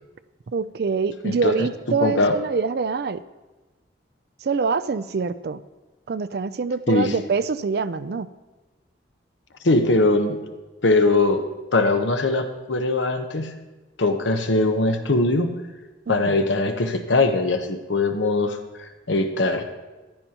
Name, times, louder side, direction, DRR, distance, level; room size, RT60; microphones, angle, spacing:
voice 1, 0.5-3.2 4.4-5.6 6.1-8.3 16.1-16.4, right 5 dB, 55° right, 14 dB, 0.4 m, -25 dB
voice 2, 1.2-2.3 6.9-7.1 9.6-10.4 10.8-13.6 14.0-15.6 16.1-19.7, left 2 dB, 80° left, 6 dB, 0.9 m, -21 dB
15.0 x 11.0 x 2.9 m, 1.2 s
head